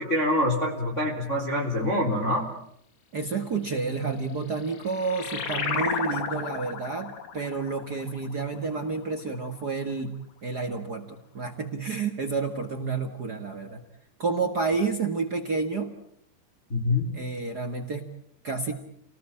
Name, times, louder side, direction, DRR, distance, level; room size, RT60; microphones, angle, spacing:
voice 1, 0.0-2.5 16.7-17.1, left 1 dB, 20° left, 0 dB, 3.3 m, -25 dB
voice 2, 3.1-10.1 10.4-13.8 14.2-15.9 17.1-18.1 18.4-18.7, right 4 dB, 65° right, 5 dB, 1.0 m, -30 dB
sound 1, 4.3-9.4, left 6 dB, 55° left, 3.3 m, -33 dB
30.0 x 19.5 x 8.8 m, 0.71 s
omnidirectional pair, 4.8 m